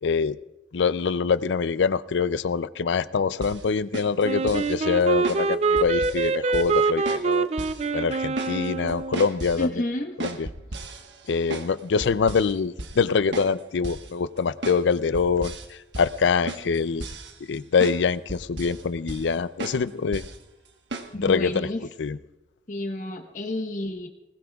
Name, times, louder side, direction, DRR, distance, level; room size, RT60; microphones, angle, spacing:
voice 1, 0.0-0.4 0.7-7.5 7.9-9.7 10.2-10.5 11.3-17.1 17.5-20.2 21.1-21.7 22.0-22.2, left 5 dB, 85° left, 16 dB, 0.5 m, -24 dB
sound 1, 3.4-3.6 3.9-4.7 5.2-5.4 5.8-6.3 6.5-6.8 7.1-7.3 7.6-7.8 8.1-8.6 8.9-9.7 10.2-11.7 12.0-12.5 12.8-13.0 13.3-13.5 13.8-14.1 14.6-14.8 15.1-15.7 15.9-16.2 16.5-17.6 17.8-18.0 18.3-18.8 19.1-19.3 19.6-19.8 20.1-20.4 20.9-21.1, right 2 dB, 85° right, 1.3 m, -35 dB
Wind instrument woodwind instrument, 4.2-9.3, right 4 dB, 35° right, 0.4 m, -25 dB
voice 2, 9.6-10.1 21.1-21.8 22.7-24.1, left 1 dB, 45° left, 4 dB, 1.2 m, -30 dB
20.5 x 19.5 x 2.4 m, 1.0 s
head